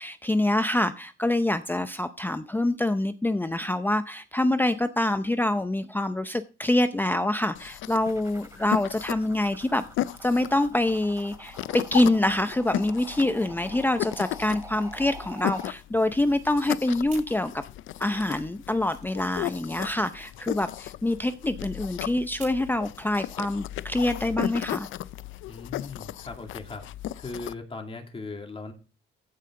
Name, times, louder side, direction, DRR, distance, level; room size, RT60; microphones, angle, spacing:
voice 1, 0.0-9.8 10.2-17.6 18.0-24.9, left 1 dB, 10° left, 10 dB, 0.6 m, -26 dB
sound 1, 7.5-27.5, left 13 dB, 75° left, 0.5 m, -36 dB
sound 2, 8.0-15.7, right 1 dB, 15° right, 2.7 m, -46 dB
sound 3, 17.0-17.9 18.2-22.7, right 4 dB, 40° right, 3.6 m, -51 dB
voice 2, 25.5-26.8 27.2-28.7, left 3 dB, 30° left, 3 dB, 2.4 m, -38 dB
15.5 x 5.6 x 3.7 m, 0.34 s
cardioid pair, 90°, 20 cm